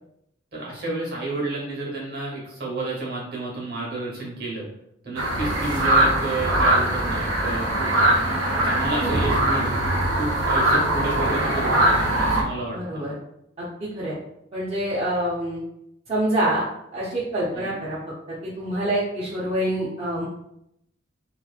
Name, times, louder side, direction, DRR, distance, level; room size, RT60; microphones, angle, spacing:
voice 1, 0.5-4.6 5.0-7.9 8.6-9.7 10.1-13.0 17.5-17.8, right 2 dB, 55° right, -3 dB, 1.0 m, -31 dB
sound 1, 5.2-12.4, right 1 dB, 85° right, 0.6 m, -21 dB
voice 2, 12.7-13.1 13.6-14.1 14.5-15.6 16.1-16.6 16.9-18.0 18.4-20.3, right 1 dB, 30° right, -8 dB, 0.5 m, -26 dB
2.9 x 2.3 x 2.4 m, 0.78 s
head